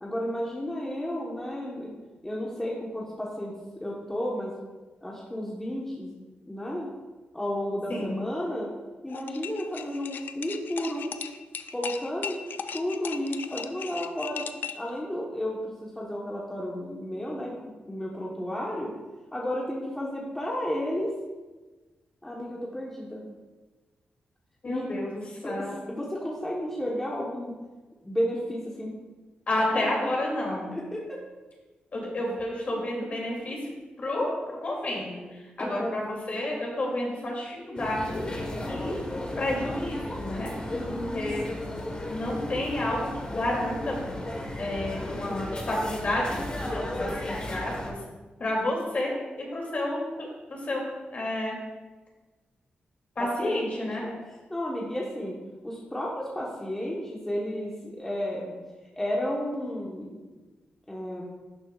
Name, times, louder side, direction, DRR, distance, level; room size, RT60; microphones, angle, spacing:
voice 1, 0.0-1.9 2.2-4.5 5.0-6.1 6.5-6.9 7.3-8.7 9.0-11.1 11.7-12.4 12.7-14.4 14.7-18.9 19.3-21.1 22.2-23.2 24.6-24.9 25.4-27.5 28.0-28.9 29.7-29.9 30.7-31.2 35.6-36.2 40.7-41.4 53.2-54.1 54.5-55.4 55.6-58.5 59.0-60.4 60.9-61.3, equal, 10° left, -4 dB, 1.2 m, -32 dB
sound 1, 9.1-14.9, left 7 dB, 65° left, 0.4 m, -37 dB
voice 2, 24.6-25.7 29.5-30.7 31.9-33.6 34.0-34.3 34.6-35.2 35.6-38.2 38.7-39.0 39.4-40.5 40.8-41.4 42.1-44.2 44.6-47.7 48.4-50.3 50.7-50.8 51.1-51.6 53.2-54.0, left 1 dB, 45° left, -2 dB, 2.7 m, -30 dB
sound 2, 37.8-47.9, left 1 dB, 25° left, 1.3 m, -35 dB
11.5 x 6.7 x 2.4 m, 1.2 s
wide cardioid pair, 115°, 4 cm